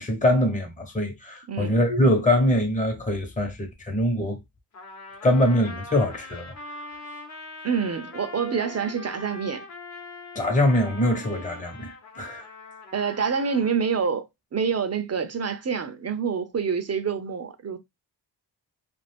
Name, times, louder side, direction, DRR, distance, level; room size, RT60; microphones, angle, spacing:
voice 1, 0.0-4.4 5.2-6.5 10.3-12.4, left 1 dB, 15° left, 1.0 m, -23 dB
Trumpet, 4.7-13.7, left 2 dB, 40° left, 1.1 m, -42 dB
voice 2, 7.6-9.6 12.9-17.8, right 6 dB, 35° right, 0.7 m, -27 dB
2.5 x 2.4 x 3.4 m
cardioid pair, 60°, 43 cm